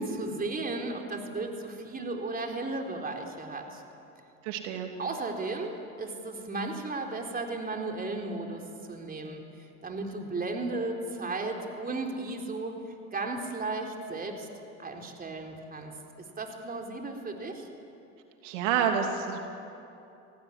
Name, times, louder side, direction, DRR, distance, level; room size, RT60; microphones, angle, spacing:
voice 1, 0.0-3.8 5.0-5.7 6.0-12.8 13.1-14.5 14.8-15.9 16.4-17.7, right 3 dB, 25° right, 2 dB, 3.9 m, -35 dB
voice 2, 4.4-4.9 18.4-19.4, right 7 dB, 80° right, 3 dB, 3.0 m, -28 dB
27.5 x 18.5 x 10.0 m, 2.8 s
supercardioid pair, 100°, 36 cm